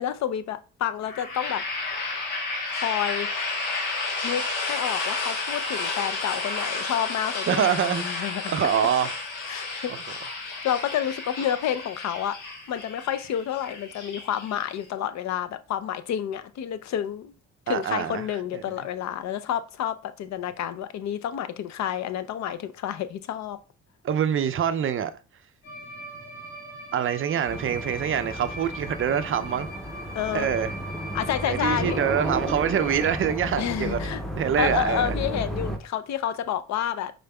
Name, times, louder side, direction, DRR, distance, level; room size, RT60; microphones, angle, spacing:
voice 1, 0.0-1.6 2.7-3.3 4.2-8.5 9.4-12.4 12.7-17.4 17.7-23.6 30.1-30.5 31.1-32.0 33.6-34.2 34.6-37.1, left 10 dB, 65° left, 0.5 m, -29 dB
sound 1, 1.0-14.9, left 3 dB, 90° left, 1.2 m, -32 dB
voice 2, 7.5-9.1 17.7-18.3 18.5-18.6 24.0-25.1 26.9-29.7 30.3-30.7 31.4-34.0 34.4-35.1, right 8 dB, 45° right, 0.4 m, -25 dB
sound 2, 25.6-33.4, right 1 dB, 40° left, 1.6 m, -40 dB
sound 3, 27.5-35.8, equal, ahead, 0.7 m, -33 dB
5.2 x 3.8 x 2.2 m
cardioid pair, 90°, 30 cm